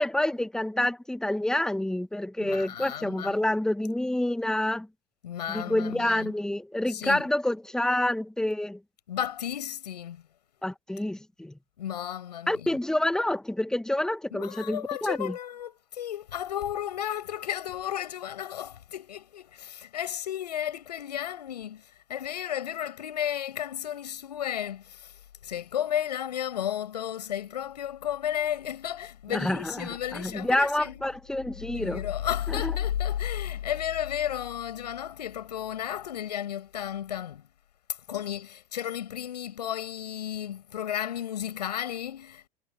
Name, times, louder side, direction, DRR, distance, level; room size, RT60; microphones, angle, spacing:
voice 1, 0.0-4.9 5.5-8.8 10.6-11.5 12.5-15.3 29.3-32.0 32.5-32.7, left 1 dB, 5° left, 1.1 m, -28 dB
voice 2, 2.4-3.4 5.2-6.3 6.9-7.2 9.1-10.2 11.8-12.8 14.3-25.1 25.4-31.0 31.7-37.5 38.1-42.5, left 10 dB, 75° left, 6.6 m, -33 dB
hypercardioid pair, 85°, 21 cm